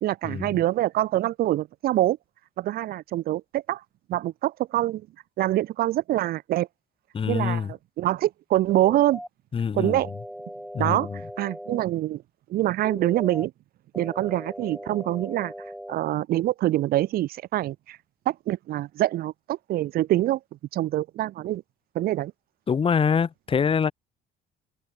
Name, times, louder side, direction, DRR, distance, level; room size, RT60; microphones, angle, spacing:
voice 1, 0.0-2.2 2.6-3.8 4.1-5.0 5.4-6.7 7.3-9.2 9.7-10.1 10.8-11.1 11.4-12.2 12.5-13.5 14.0-15.5 15.9-18.0 18.3-20.4 20.7-21.6 21.9-22.3, right 14 dB, 65° right, 0.6 m, -25 dB
voice 2, 7.1-7.7 9.5-10.0 10.7-11.2 22.7-23.9, left 6 dB, 35° left, 1.4 m, -25 dB
sound 1, 8.7-9.3 9.8-11.8 12.8-13.5 13.9-15.9, equal, ahead, 2.5 m, -39 dB
cardioid pair, 110°, 17 cm